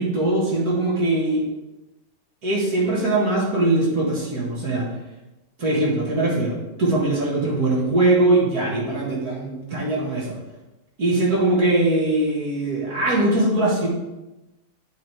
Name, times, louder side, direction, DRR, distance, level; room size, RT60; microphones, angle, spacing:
voice 1, 0.0-1.4 2.4-4.9 5.6-10.4 11.0-13.9, right 2 dB, 65° right, -4 dB, 2.1 m, -21 dB
8.1 x 4.8 x 4.6 m, 1.0 s
omnidirectional pair, 1.8 m